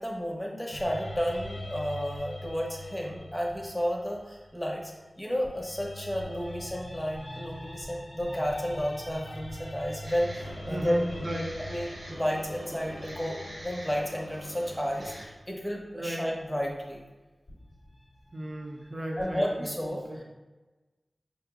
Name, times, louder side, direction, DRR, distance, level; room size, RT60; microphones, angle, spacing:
voice 1, 0.0-4.9 5.2-11.0 11.7-17.0 19.2-20.0, equal, 10° left, -1 dB, 0.7 m, -32 dB
sound 1, 0.7-4.9 5.4-15.5 17.5-19.4, left 1 dB, 55° left, 0.8 m, -44 dB
sound 2, 10.0-15.3, equal, 85° right, 0.9 m, -44 dB
voice 2, 10.7-11.5 15.9-16.3 18.3-20.2, equal, 50° right, 0 dB, 0.6 m, -35 dB
5.0 x 2.0 x 3.5 m, 1.2 s
wide cardioid pair, 65°, 0 cm